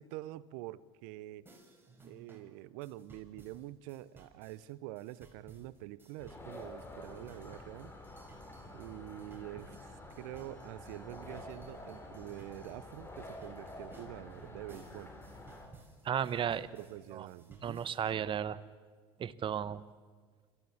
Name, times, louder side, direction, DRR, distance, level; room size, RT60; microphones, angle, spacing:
voice 1, 0.0-1.5 2.0-7.9 8.7-15.1 16.7-17.9, right 16 dB, 70° right, 19 dB, 0.7 m, -46 dB
sound 1, 1.5-18.0, right 3 dB, 15° right, 5.5 m, -59 dB
sound 2, 6.2-15.7, left 1 dB, 20° left, 4.2 m, -49 dB
voice 2, 16.0-16.7 17.1-17.3 17.6-18.6 19.2-19.8, right 9 dB, 40° right, 16 dB, 1.0 m, -34 dB
27.0 x 14.5 x 7.2 m, 1.5 s
hypercardioid pair, 75°, 13 cm